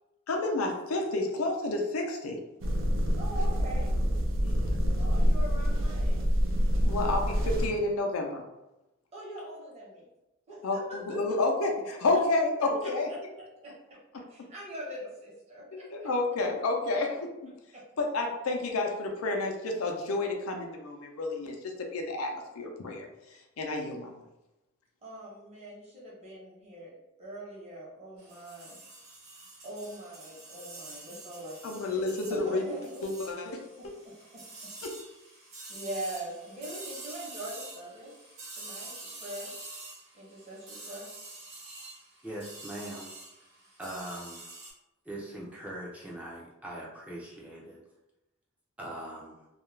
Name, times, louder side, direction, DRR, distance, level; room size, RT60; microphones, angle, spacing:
voice 1, 0.3-2.4 4.4-4.8 6.8-8.4 10.6-13.1 15.7-17.3 18.0-23.1 23.6-24.2 31.6-32.6 33.0-33.6 34.8-34.9, left 2 dB, 85° left, 2 dB, 0.5 m, -30 dB
sound 1, 2.6-7.7, equal, 60° right, 0.4 m, -26 dB
voice 2, 3.2-3.9 5.0-6.5 9.1-10.1 10.5-11.2 12.1-12.2 13.1-13.2 13.6-14.0 14.3-16.1 17.7-17.8 25.0-26.9 27.2-28.8 29.6-33.1 33.8-34.1 34.4-34.5 35.7-38.2 38.5-39.5 40.1-41.1, right 1 dB, 30° right, -5 dB, 0.9 m, -42 dB
sound 2, 28.2-44.7, right 2 dB, 80° right, 0.9 m, -47 dB
voice 3, 42.2-43.2 43.8-44.5 45.0-47.8 48.8-49.5, right 1 dB, 5° right, -4 dB, 0.4 m, -41 dB
2.4 x 2.2 x 3.1 m, 0.96 s
head